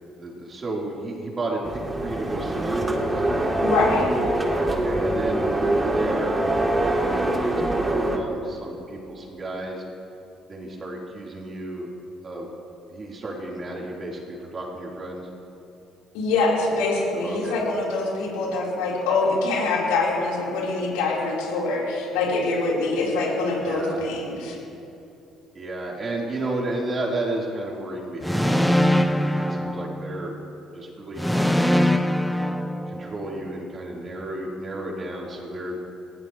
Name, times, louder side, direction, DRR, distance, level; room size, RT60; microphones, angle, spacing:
voice 1, 0.1-3.4 4.6-6.4 6.8-9.8 10.5-11.9 12.2-12.5 12.9-15.3 17.2-17.6 23.6-24.0 25.5-30.4 30.7-31.9 32.9-35.8, right 2 dB, 40° right, -3 dB, 3.9 m, -32 dB
sound 1, 1.6-8.2, right 1 dB, 20° right, 2.3 m, -24 dB
voice 2, 3.6-4.1 16.1-24.6, left 3 dB, 85° left, -5 dB, 4.2 m, -24 dB
sound 2, 28.2-30.4 31.2-33.4, left 1 dB, ahead, 0.8 m, -22 dB
19.5 x 15.0 x 3.2 m, 2.7 s
supercardioid pair, 65°, 0 cm